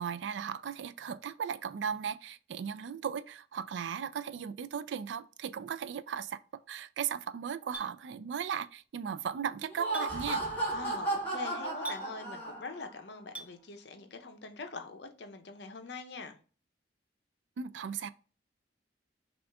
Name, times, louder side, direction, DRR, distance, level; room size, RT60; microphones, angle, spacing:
voice 1, 0.0-10.4 17.6-18.1, right 7 dB, 80° right, 0.3 m, -37 dB
Chink clink, 7.7-7.9 9.9-10.1 11.8-12.0 13.3-13.5, right 3 dB, 10° right, 0.7 m, -41 dB
Laughter, 9.6-12.9, right 2 dB, 10° left, 1.5 m, -34 dB
voice 2, 10.7-16.4, left 4 dB, 65° left, 0.7 m, -43 dB
6.1 x 2.5 x 3.4 m
head